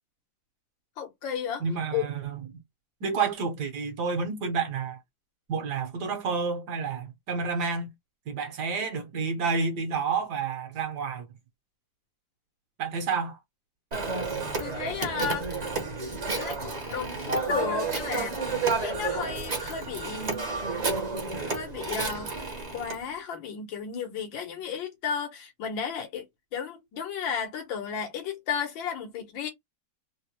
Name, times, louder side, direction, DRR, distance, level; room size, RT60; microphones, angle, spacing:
voice 1, 1.0-1.6 1.9-2.1 14.6-15.5 16.3-18.4 18.8-20.5 21.4-22.4 22.7-26.3 26.5-29.5, left 7 dB, 85° left, 1.8 m, -33 dB
voice 2, 1.6-2.4 3.0-5.0 5.5-7.9 8.3-11.3 12.8-13.4, right 5 dB, 65° right, 1.4 m, -29 dB
Telephone, 13.9-23.0, right 3 dB, 35° right, 0.6 m, -31 dB
4.0 x 2.1 x 2.8 m
omnidirectional pair, 2.0 m